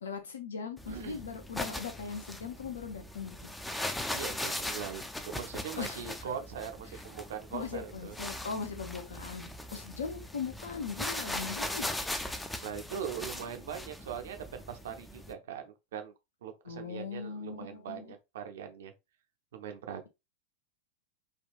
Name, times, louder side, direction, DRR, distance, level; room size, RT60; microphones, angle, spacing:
voice 1, 0.0-3.5 5.8-6.3 6.9-7.0 7.5-11.9 16.7-18.1, left 5 dB, 70° left, 0.6 m, -39 dB
sound 1, 0.8-15.3, left 1 dB, 5° left, 0.4 m, -39 dB
voice 2, 0.9-1.2 4.1-8.2 12.6-16.1 16.4-18.9 19.5-20.1, right 8 dB, 60° right, 0.6 m, -41 dB
3.5 x 2.3 x 2.5 m
figure-of-eight pair, 90°, 0 cm